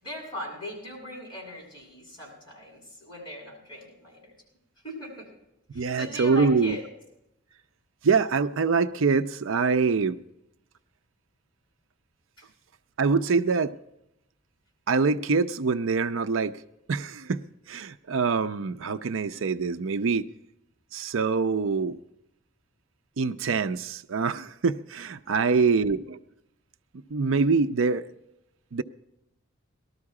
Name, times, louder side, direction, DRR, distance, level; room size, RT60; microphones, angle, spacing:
voice 1, 0.0-4.3 4.8-5.3 5.7-6.8 12.4-12.5 25.3-25.8, left 1 dB, 20° left, -2 dB, 7.6 m, -40 dB
voice 2, 5.7-6.8 8.0-10.2 13.0-13.7 14.9-16.6 16.9-20.3 20.9-22.0 23.2-26.2 27.1-28.1 28.7-28.8, right 4 dB, 70° right, 10 dB, 0.5 m, -25 dB
19.0 x 13.0 x 4.8 m, 0.84 s
head